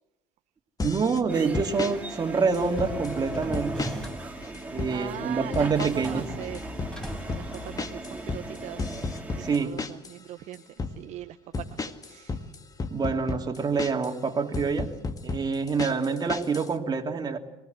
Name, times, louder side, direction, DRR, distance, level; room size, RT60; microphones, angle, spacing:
sound 1, 0.8-1.2 1.5-1.9 2.5-3.2 3.5-4.2 4.4-5.0 5.5-6.2 6.4-10.2 10.5-11.0 11.5-14.1 14.5-16.7, left 4 dB, 25° left, 1.9 m, -33 dB
voice 1, 0.8-3.9 4.7-6.2 9.4-9.8 12.9-14.9 15.2-17.4, right 5 dB, 30° right, 3 dB, 3.0 m, -27 dB
sound 2, 1.3-9.6, right 2 dB, 10° right, 3.2 m, -38 dB
sound 3, 2.6-4.4 5.5-8.4, equal, 5° left, 5.4 m, -39 dB
voice 2, 4.9-6.6 7.4-8.9 9.3-10.6 10.9-12.5, right 12 dB, 60° right, 7 dB, 1.1 m, -40 dB
24.5 x 20.0 x 8.2 m, 0.91 s
hypercardioid pair, 70°, 13 cm